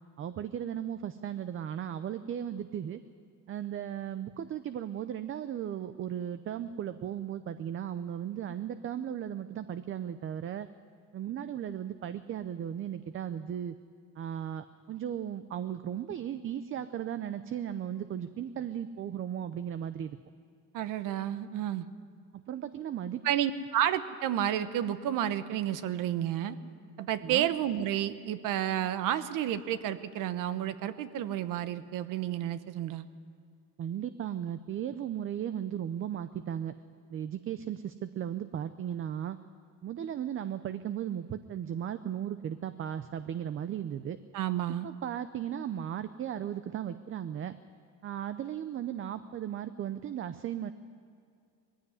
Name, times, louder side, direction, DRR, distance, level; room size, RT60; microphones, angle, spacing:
voice 1, 0.2-3.0 3.5-10.7 11.1-13.7 14.2-20.2 22.3-23.2 27.2-27.5 33.8-36.7 37.1-39.4 39.8-44.2 44.8-47.6 48.0-50.7, right 10 dB, 40° right, 12 dB, 0.6 m, -36 dB
voice 2, 20.7-21.9 23.2-26.6 27.0-33.1 44.3-44.9, right 11 dB, 70° right, 13 dB, 1.0 m, -31 dB
20.0 x 15.5 x 9.6 m, 2.3 s
cardioid pair, 130°, 34 cm